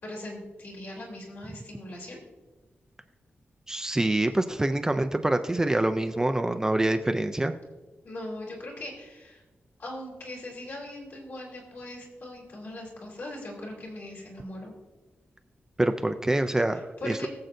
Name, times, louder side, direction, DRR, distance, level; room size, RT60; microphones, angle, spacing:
voice 1, 0.0-2.2 8.0-9.4 9.8-14.7 17.0-17.3, left 1 dB, 55° left, -2 dB, 3.2 m, -40 dB
voice 2, 3.7-7.5 15.8-17.3, right 1 dB, 10° right, 7 dB, 0.4 m, -26 dB
22.5 x 7.6 x 2.6 m, 1.2 s
wide cardioid pair, 170°, 4 cm